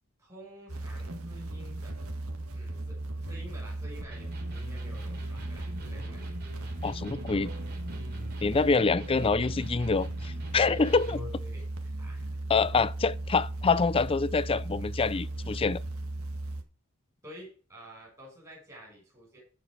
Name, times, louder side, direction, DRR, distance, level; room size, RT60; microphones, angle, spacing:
voice 1, 0.2-1.9 2.5-6.2 10.9-12.3 17.2-19.4, left 1 dB, 15° right, 6.5 m, -49 dB
sound 1, 0.7-16.6, right 2 dB, 75° right, 1.7 m, -36 dB
Electric guitar, 4.1-11.4, left 1 dB, 45° right, 3.8 m, -46 dB
voice 2, 6.8-7.5 8.4-11.2 12.5-15.8, left 4 dB, 25° left, 0.4 m, -26 dB
14.0 x 5.3 x 4.9 m
head